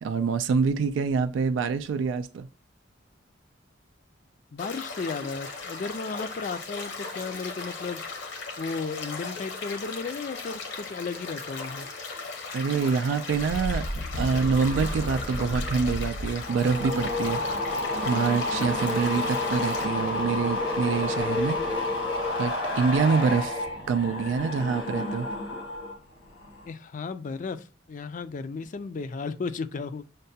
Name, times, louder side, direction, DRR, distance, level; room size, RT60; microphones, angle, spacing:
voice 1, 0.0-2.5 12.5-13.8 14.2-17.4 18.0-21.6 22.4-25.3, right 5 dB, 90° right, 0.3 m, -26 dB
voice 2, 4.5-8.0 8.6-11.9 26.7-30.1, left 4 dB, 45° left, 0.4 m, -34 dB
sound 1, 4.6-19.8, left 4 dB, 70° left, 0.9 m, -37 dB
sound 2, 13.3-26.0 26.3-26.7, left 2 dB, 90° left, 1.4 m, -30 dB
6.5 x 2.2 x 2.7 m
head